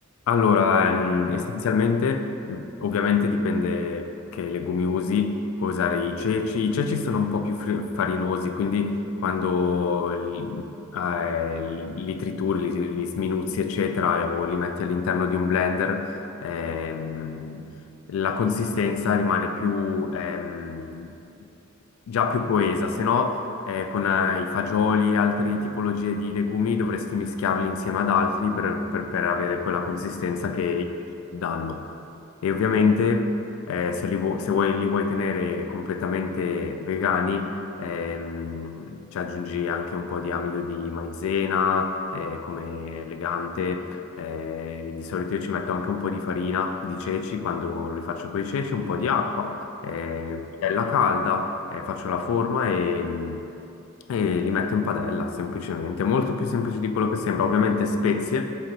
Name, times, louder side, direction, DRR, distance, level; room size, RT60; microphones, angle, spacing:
voice 1, 0.3-9.0 9.2-16.1 16.4-17.7 18.1-21.1 22.1-30.8 31.3-31.8 32.4-33.3 33.7-37.5 37.8-49.5 49.8-53.4 54.1-58.5, left 5 dB, 70° left, 8 dB, 0.3 m, -25 dB
3.8 x 2.9 x 4.4 m, 2.7 s
head